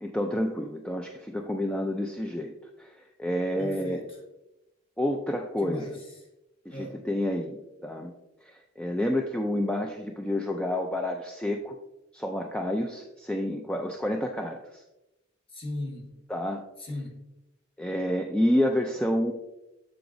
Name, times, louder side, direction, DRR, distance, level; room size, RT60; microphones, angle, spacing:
voice 1, 0.0-2.5 2.8-4.0 5.0-5.8 6.7-7.6 7.8-8.1 8.4-11.7 12.1-14.8 16.3-16.6 17.8-19.3, left 1 dB, 5° left, 2 dB, 0.3 m, -29 dB
voice 2, 3.6-4.2 5.6-6.3 6.7-7.0 15.5-16.2 16.8-17.2, left 1 dB, 25° left, 1 dB, 1.3 m, -38 dB
7.9 x 7.1 x 2.6 m, 0.96 s
head